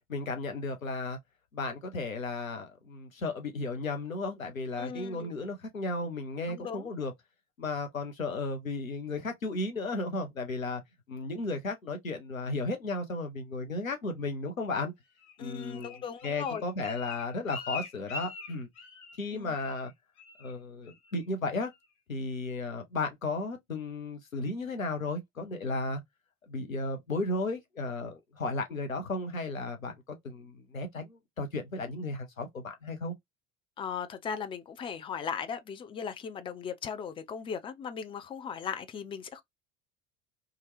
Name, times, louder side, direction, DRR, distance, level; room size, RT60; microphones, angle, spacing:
voice 1, 0.1-1.2 1.5-7.1 7.6-10.8 11.1-14.9 15.4-15.9 16.2-18.7 19.2-19.9 20.4-21.7 22.1-26.0 26.5-33.1, left 2 dB, 85° left, 0.7 m, -34 dB
voice 2, 4.8-5.3 6.5-6.9 15.4-16.6 19.3-19.5 33.8-39.4, left 7 dB, 15° left, 0.3 m, -38 dB
Bird, 15.2-19.3 19.5-19.9 20.2-20.5 20.9-21.2 21.6-21.7, left 4 dB, 60° left, 1.2 m, -43 dB
2.8 x 2.3 x 3.1 m
figure-of-eight pair, 65°, 39 cm